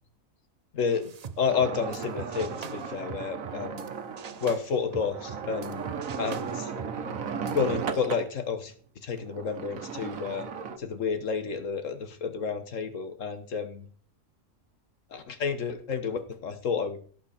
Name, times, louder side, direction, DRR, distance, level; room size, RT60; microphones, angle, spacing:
voice 1, 0.7-3.9 4.4-5.9 6.2-6.7 7.5-8.7 9.0-10.5 10.8-13.8 15.1-17.0, left 6 dB, 75° left, 9 dB, 1.7 m, -30 dB
sound 1, 0.9-3.9 4.2-7.8, right 7 dB, 55° right, 0.4 m, -43 dB
sound 2, 1.5-8.3 9.2-10.8, right 6 dB, 85° right, 1.5 m, -36 dB
17.0 x 6.0 x 4.3 m, 0.44 s
omnidirectional pair, 1.4 m